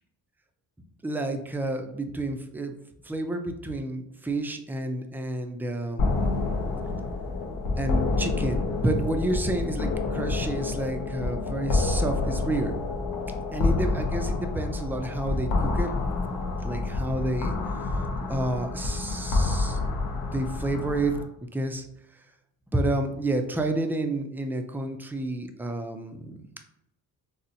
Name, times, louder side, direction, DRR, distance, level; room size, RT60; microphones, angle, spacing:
voice 1, 1.0-2.7 3.0-6.3 7.8-12.8 13.5-15.9 16.6-17.9 18.3-19.8 20.1-21.2 21.5-21.8 22.7-26.6, right 1 dB, 5° right, 5 dB, 0.3 m, -30 dB
sound 1, 6.0-21.2, left 3 dB, 70° left, 0.6 m, -28 dB
4.0 x 2.1 x 2.6 m, 0.81 s
cardioid pair, 80°, 36 cm